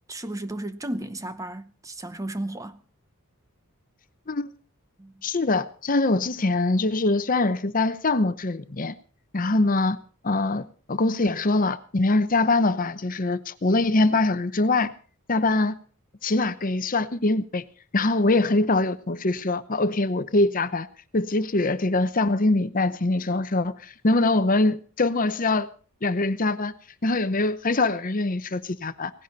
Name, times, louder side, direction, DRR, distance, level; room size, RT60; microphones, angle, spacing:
voice 1, 0.1-2.8 5.0-5.1, right 1 dB, 15° right, 0.7 m, -34 dB
voice 2, 5.2-8.9 9.3-10.0 10.2-14.9 15.3-15.8 16.2-17.6 17.9-20.9 21.1-25.7 26.0-26.7 27.0-29.1, left 2 dB, 40° left, 0.8 m, -23 dB
18.0 x 16.0 x 4.2 m
head